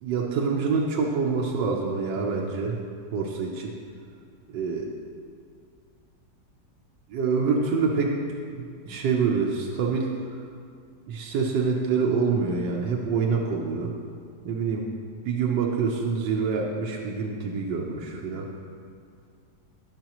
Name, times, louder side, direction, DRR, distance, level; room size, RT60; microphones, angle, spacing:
voice 1, 0.0-2.8 3.1-3.7 4.5-4.9 7.1-8.1 8.5-10.1 11.1-13.9 14.4-14.9 15.2-18.5, right 5 dB, 80° right, -2 dB, 1.4 m, -26 dB
11.0 x 10.5 x 3.0 m, 2.2 s
omnidirectional pair, 1.9 m